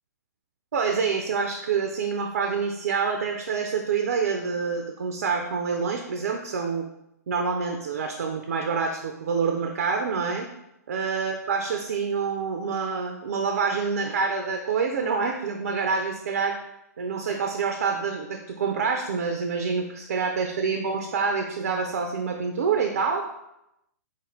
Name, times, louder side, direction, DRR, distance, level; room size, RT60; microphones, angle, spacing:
voice 1, 0.7-6.9 7.3-10.5 10.9-16.6 17.0-23.3, right 5 dB, 65° right, 4 dB, 0.4 m, -27 dB
4.2 x 2.4 x 3.0 m, 0.85 s
figure-of-eight pair, 110°, 9 cm